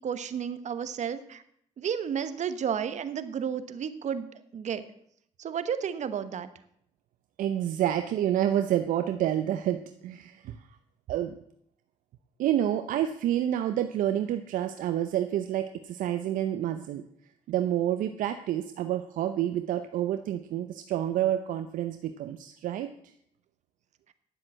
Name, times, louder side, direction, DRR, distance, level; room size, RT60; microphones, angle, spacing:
voice 1, 0.0-1.4 1.8-4.8 5.4-6.5, right 8 dB, 60° right, 12 dB, 1.1 m, -32 dB
voice 2, 7.4-10.6 11.1-11.3 12.4-17.0 17.5-22.9, right 11 dB, 75° right, 9 dB, 0.7 m, -28 dB
10.5 x 7.6 x 7.5 m, 0.70 s
supercardioid pair, 60°, 14 cm